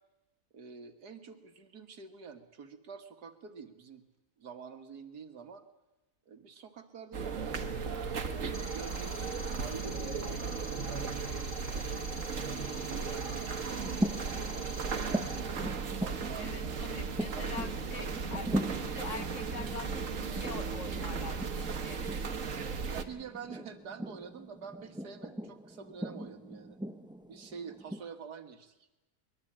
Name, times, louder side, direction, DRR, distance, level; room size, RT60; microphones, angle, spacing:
voice 1, 0.5-4.0 4.4-5.6 6.3-9.2 9.6-12.1 12.7-13.9 14.3-15.5 15.9-16.7 17.3-18.4 22.3-26.8 27.3-28.8, right 6 dB, 80° right, 8 dB, 2.2 m, -48 dB
sound 1, 7.1-23.0, right 5 dB, 55° right, 1.7 m, -36 dB
sound 2, 8.5-15.4, left 2 dB, 15° left, 1.9 m, -47 dB
sound 3, 13.8-28.0, right 1 dB, 5° right, 0.8 m, -40 dB
voice 2, 16.3-22.0, left 5 dB, 50° left, 9 dB, 1.7 m, -44 dB
23.0 x 22.0 x 8.8 m, 1.0 s
omnidirectional pair, 1.7 m